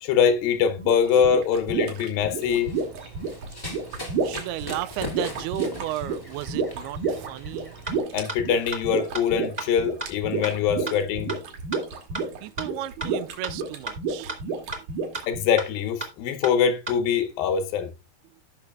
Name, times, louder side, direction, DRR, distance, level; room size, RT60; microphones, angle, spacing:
voice 1, 0.0-2.7 8.1-11.3 15.3-17.9, left 7 dB, 75° left, 2.4 m, -23 dB
sound 1, 0.8-15.4, right 4 dB, 65° right, 3.3 m, -30 dB
Run, 2.4-8.0, left 1 dB, 30° left, 0.4 m, -40 dB
voice 2, 4.2-7.8 10.3-10.4 10.8-11.1 12.4-14.5, right 14 dB, 85° right, 2.6 m, -34 dB
sound 2, 7.9-8.0 8.3-8.4 8.7-8.8 9.1-9.2 9.6-9.7 10.0-10.1 10.4-10.5 10.9-11.0 11.3-11.4 11.7-11.8 12.1-12.2 12.6-12.7 13.0-13.1 13.4-13.5 13.9-14.0 14.3-14.4 14.7-14.8 15.1-15.2 15.6-15.7 16.0-16.1 16.4-16.5 16.9-17.0, right 2 dB, 35° right, 0.6 m, -32 dB
17.0 x 5.9 x 2.3 m
omnidirectional pair, 4.5 m